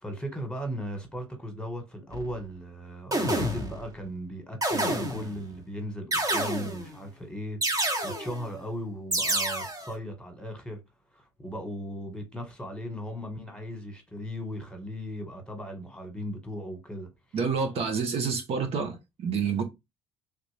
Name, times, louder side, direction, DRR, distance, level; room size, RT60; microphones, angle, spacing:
voice 1, 0.0-10.8 11.1-17.1, equal, 10° left, 1.5 m, -37 dB
sound 1, 2.1-2.3 3.1-3.9 4.6-5.4 6.1-6.9 7.6-8.4 9.1-9.9, right 1 dB, 30° right, 1.2 m, -28 dB
voice 2, 17.3-19.6, right 5 dB, 60° right, 0.9 m, -28 dB
3.3 x 2.4 x 3.3 m
supercardioid pair, 70°, 11 cm